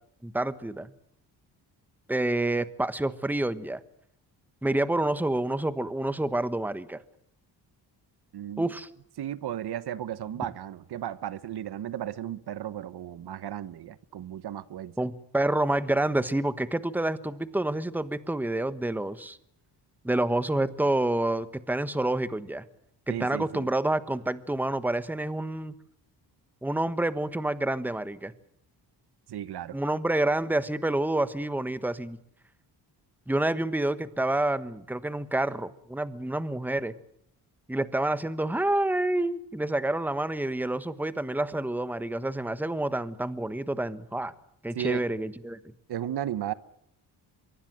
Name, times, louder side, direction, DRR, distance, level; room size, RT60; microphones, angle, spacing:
voice 1, 0.2-0.9 2.1-3.8 4.6-7.0 8.6-8.9 15.0-19.4 20.0-22.6 23.1-25.7 26.6-28.3 29.7-32.2 33.3-36.9 37.7-44.3 44.6-45.6, right 1 dB, 5° right, 1.3 m, -28 dB
voice 2, 8.3-8.7 9.2-15.1 23.1-23.7 29.3-29.8 44.7-45.0 45.9-46.5, right 11 dB, 70° right, 1.2 m, -35 dB
24.0 x 23.5 x 7.7 m
cardioid pair, 115°, 41 cm